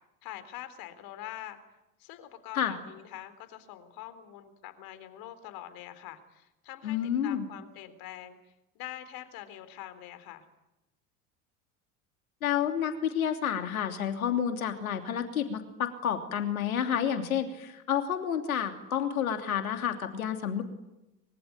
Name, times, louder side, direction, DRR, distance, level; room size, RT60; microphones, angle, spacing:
voice 1, 0.2-1.6 2.0-7.0 7.2-8.4 8.8-10.4, left 12 dB, 55° left, 11 dB, 3.7 m, -44 dB
voice 2, 6.8-7.5 12.4-20.6, left 9 dB, 75° left, 6 dB, 3.1 m, -30 dB
25.0 x 23.5 x 9.6 m, 0.98 s
figure-of-eight pair, 70°, 43 cm